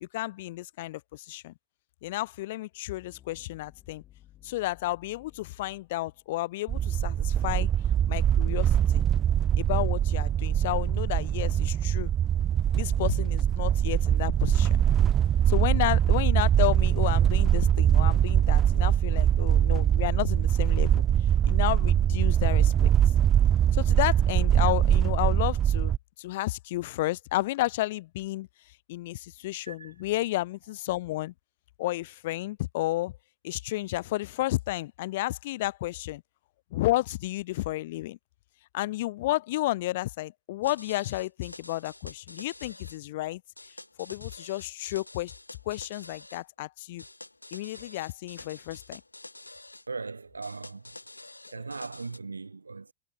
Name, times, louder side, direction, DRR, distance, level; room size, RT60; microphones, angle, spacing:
voice 1, 0.0-1.5 2.0-4.0 4.4-7.7 8.1-9.0 9.6-12.1 12.7-14.8 15.5-21.0 21.4-22.9 23.7-28.5 28.9-31.3 31.8-33.2 33.4-36.2 36.7-38.2 38.7-43.4 44.0-45.3 45.7-47.0 47.5-49.0, left 17 dB, 55° left, 0.5 m, -32 dB
sound 1, 3.0-7.1, left 13 dB, 35° left, 5.4 m, -57 dB
sound 2, 6.7-26.0, right 10 dB, 25° right, 0.4 m, -23 dB
sound 3, 40.6-43.0 43.6-46.4 47.0-49.9 50.4-52.2, left 2 dB, 85° left, 1.4 m, -47 dB
voice 2, 49.9-51.0 51.5-52.9, right 4 dB, 80° right, 2.1 m, -39 dB
figure-of-eight pair, 90°, 0 cm